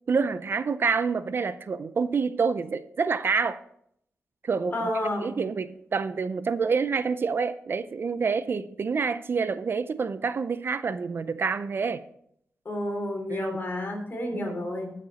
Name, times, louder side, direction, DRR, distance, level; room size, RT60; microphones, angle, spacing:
voice 1, 0.1-3.6 4.4-4.9 5.2-12.0 13.3-13.6 14.3-14.6, right 5 dB, 50° right, 0.5 m, -27 dB
voice 2, 4.7-5.3 12.6-14.9, left 1 dB, 45° left, 3.3 m, -30 dB
13.5 x 6.7 x 4.1 m
wide cardioid pair, 105°, 5 cm